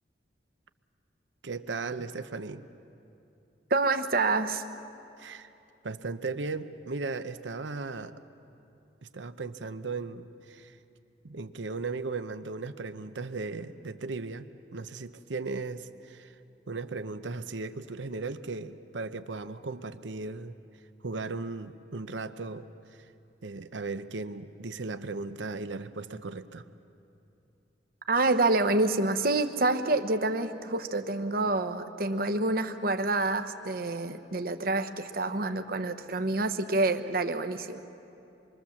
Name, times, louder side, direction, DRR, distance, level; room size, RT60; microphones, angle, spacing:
voice 1, 1.4-2.6 5.2-5.5 5.8-8.1 9.0-10.8 11.2-14.5 14.7-16.3 16.7-20.6 21.0-22.7 23.4-26.7, right 3 dB, 85° right, 11 dB, 0.8 m, -36 dB
voice 2, 3.7-4.6 28.1-37.8, right 2 dB, 55° right, 8 dB, 1.0 m, -27 dB
26.5 x 22.5 x 7.2 m, 2.8 s
head